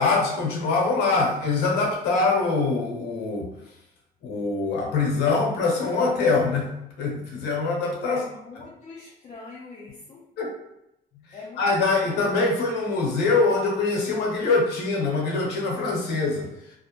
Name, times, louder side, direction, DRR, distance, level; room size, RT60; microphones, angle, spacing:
voice 1, 0.0-3.5 4.2-6.7 7.0-8.2 10.4-10.5 11.6-16.5, left 3 dB, 80° left, -1 dB, 0.8 m, -23 dB
voice 2, 8.1-10.2 11.3-12.4, left 3 dB, 35° left, -5 dB, 0.5 m, -43 dB
2.5 x 2.1 x 2.9 m, 0.83 s
cardioid pair, 110°, 17 cm